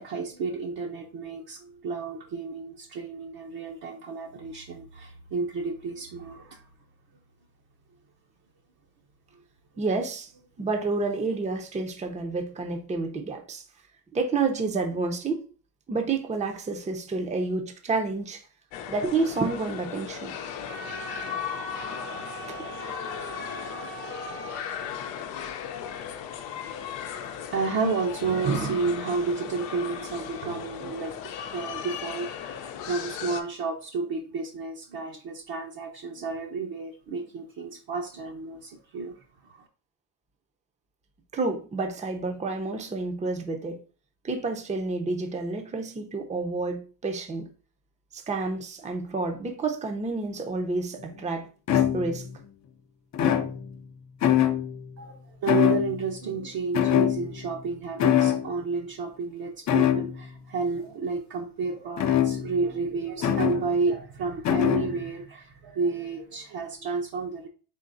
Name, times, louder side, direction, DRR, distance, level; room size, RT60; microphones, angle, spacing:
voice 1, 0.0-6.6 27.5-39.2 55.0-67.5, right 4 dB, 55° right, 0.8 m, -31 dB
voice 2, 9.8-10.3 10.6-13.6 14.1-15.4 15.9-18.4 18.9-20.3 22.5-22.6 41.3-43.8 44.2-47.5 48.1-51.5 51.7-52.3, right 3 dB, 15° right, 0.6 m, -29 dB
sound 1, 18.7-33.4, left 8 dB, 85° left, 0.7 m, -37 dB
Wind instrument woodwind instrument, 20.7-24.9, right 4 dB, 80° right, 1.7 m, -40 dB
sound 2, 51.0-51.1 51.7-52.4 53.1-53.9 54.2-54.9 55.5-56.2 56.7-57.6 58.0-58.5 59.7-60.3 62.0-62.7 63.2-63.7 64.4-65.0, left 10 dB, 40° left, 0.6 m, -24 dB
3.8 x 3.8 x 2.5 m
supercardioid pair, 85°, 43 cm